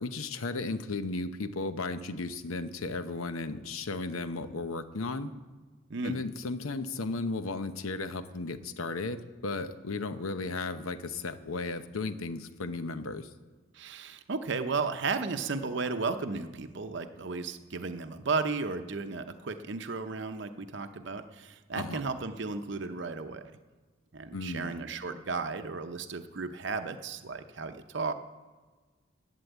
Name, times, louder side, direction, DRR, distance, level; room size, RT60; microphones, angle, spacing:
voice 1, 0.0-5.3 6.0-13.3 21.8-22.0 24.3-24.8, left 3 dB, 85° left, 11 dB, 0.8 m, -35 dB
voice 2, 13.7-23.6 24.1-28.1, right 4 dB, 55° right, 8 dB, 0.7 m, -34 dB
11.5 x 9.0 x 8.1 m, 1.4 s
head